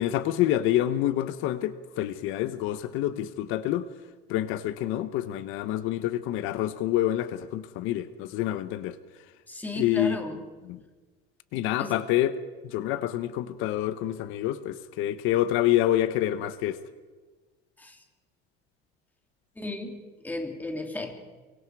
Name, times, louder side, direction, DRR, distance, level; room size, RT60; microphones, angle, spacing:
voice 1, 0.0-3.9 4.3-9.0 9.8-10.2 10.7-10.8 11.5-12.3 12.6-16.8, left 13 dB, 75° left, 12 dB, 1.1 m, -27 dB
voice 2, 9.5-10.4 11.8-11.9 17.8-18.0 19.5-21.2, left 2 dB, 10° left, 3 dB, 3.0 m, -35 dB
24.0 x 24.0 x 4.8 m, 1.3 s
cardioid pair, 150°, 21 cm